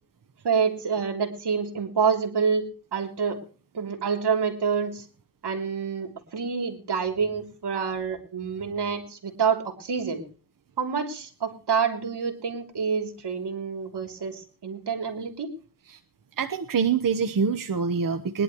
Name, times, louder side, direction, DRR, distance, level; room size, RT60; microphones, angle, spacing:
voice 1, 0.4-3.4 3.7-5.1 5.4-10.2 10.8-15.5, right 6 dB, 80° right, 4 dB, 3.2 m, -27 dB
voice 2, 16.4-18.4, right 6 dB, 55° right, 8 dB, 1.0 m, -25 dB
21.0 x 11.5 x 3.1 m, 0.39 s
wide cardioid pair, 80°, 40 cm